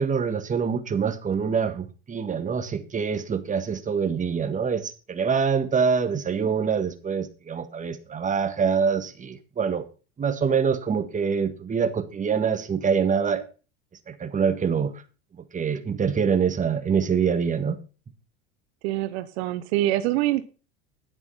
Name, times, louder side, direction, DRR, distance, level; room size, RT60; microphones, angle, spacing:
voice 1, 0.0-9.8 10.2-13.4 14.1-14.9 15.4-17.8, right 6 dB, 20° right, 9 dB, 1.6 m, -25 dB
voice 2, 18.8-20.4, right 14 dB, 70° right, 12 dB, 0.9 m, -25 dB
10.5 x 8.0 x 5.6 m, 0.35 s
hypercardioid pair, 100°, 34 cm